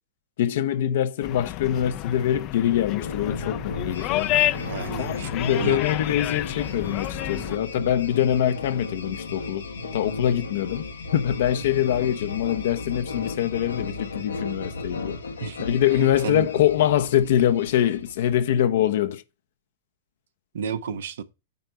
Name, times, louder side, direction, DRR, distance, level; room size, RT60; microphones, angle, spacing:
voice 1, 0.4-4.3 5.0-9.6 9.9-10.8 11.1-15.2 15.6-19.2, left 11 dB, 65° left, 0.9 m, -24 dB
sound 1, 1.2-7.6, left 14 dB, 40° left, 0.6 m, -29 dB
sound 2, 3.0-18.5, left 3 dB, 85° left, 1.5 m, -35 dB
voice 2, 4.6-5.3 5.6-5.8 15.4-15.6 16.0-16.6 20.5-21.2, right 7 dB, 70° right, 1.1 m, -31 dB
9.5 x 4.4 x 5.5 m
hypercardioid pair, 110°, 0 cm